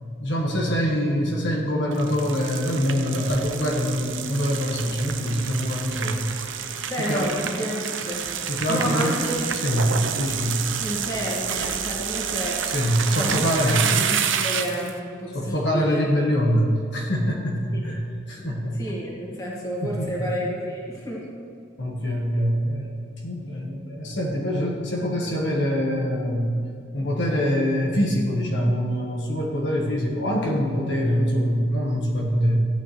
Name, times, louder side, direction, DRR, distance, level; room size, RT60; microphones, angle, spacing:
voice 1, 0.2-6.3 7.0-7.3 8.5-9.2 9.5-10.6 12.7-13.9 15.3-18.0 18.3-18.8 19.8-20.3 21.8-23.0 23.2-26.5 26.9-32.6, equal, 70° left, -2 dB, 1.5 m, -24 dB
sound 1, 1.9-14.9, right 8 dB, 85° right, 0.7 m, -29 dB
voice 2, 6.9-8.2 8.7-9.7 10.0-10.1 10.8-12.6 13.2-16.1 18.4-18.5 18.8-21.2, equal, 20° left, -4 dB, 2.0 m, -30 dB
15.5 x 9.4 x 3.3 m, 2.3 s
head